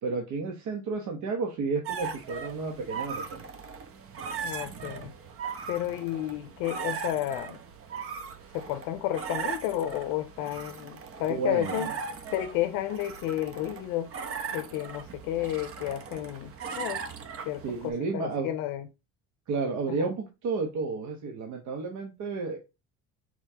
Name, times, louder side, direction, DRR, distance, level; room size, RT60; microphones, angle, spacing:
voice 1, 0.0-3.5 11.3-11.9 17.6-18.5 19.5-22.6, right 4 dB, 65° right, 1.1 m, -32 dB
sound 1, 1.8-17.9, right 6 dB, 45° right, 0.9 m, -38 dB
voice 2, 4.4-5.1 5.7-7.6 8.5-11.9 12.3-14.1 14.5-17.0 17.5-18.9 19.9-20.1, left 13 dB, 75° left, 0.5 m, -32 dB
4.5 x 4.2 x 2.8 m
supercardioid pair, 85°, 33 cm